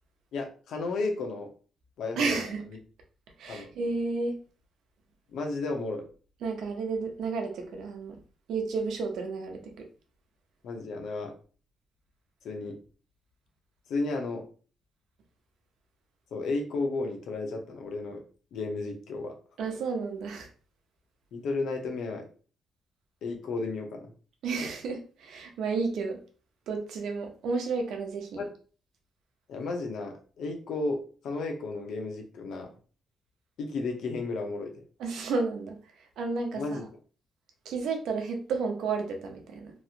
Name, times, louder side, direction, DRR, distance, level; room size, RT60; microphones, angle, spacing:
voice 1, 0.3-1.5 2.0-2.5 3.5-3.7 5.3-6.1 10.6-11.3 12.4-12.8 13.9-14.4 16.3-18.2 18.5-19.4 21.3-22.3 23.2-24.1 28.4-28.5 29.5-32.7 33.6-34.7 36.5-36.8, left 3 dB, 80° left, 4 dB, 0.7 m, -33 dB
voice 2, 2.2-2.6 3.4-4.3 6.4-8.2 8.5-9.9 19.6-20.5 24.4-26.2 26.7-28.4 35.0-35.8 36.2-36.8 37.7-39.7, right 4 dB, 85° right, 4 dB, 0.7 m, -32 dB
3.0 x 2.5 x 2.8 m, 0.39 s
cardioid pair, 125°, 0 cm